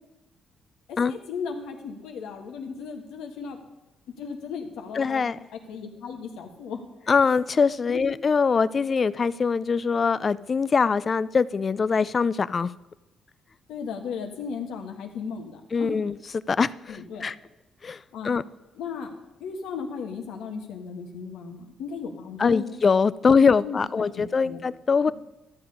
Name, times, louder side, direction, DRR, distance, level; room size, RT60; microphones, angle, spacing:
voice 1, 1.1-3.6 4.1-5.2 5.7-7.1 7.9-8.0 13.7-16.1 16.9-17.3 18.1-18.4 18.8-19.1 19.4-22.7 23.4-24.0 24.4-24.6, left 6 dB, 85° left, 4 dB, 1.4 m, -36 dB
voice 2, 4.9-5.4 7.1-12.7 15.7-17.4 17.8-18.4 22.4-25.1, left 5 dB, 40° left, 18 dB, 0.3 m, -23 dB
12.5 x 6.8 x 5.3 m, 1.0 s
cardioid pair, 90°, 0 cm